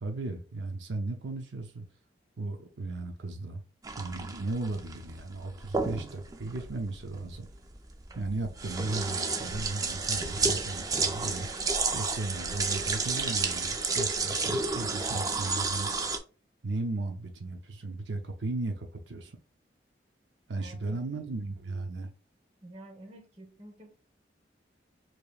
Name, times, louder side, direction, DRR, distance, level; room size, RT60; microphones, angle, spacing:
voice 1, 0.0-1.9 2.4-3.6 4.0-7.5 8.1-11.5 11.9-15.9 16.6-19.4 20.5-22.1, right 2 dB, 90° right, 0.7 m, -36 dB
sound 1, 3.8-16.2, right 4 dB, 20° right, 0.4 m, -31 dB
voice 2, 20.5-21.1 22.6-23.9, right 1 dB, 35° right, 1.0 m, -49 dB
4.9 x 3.0 x 2.3 m
head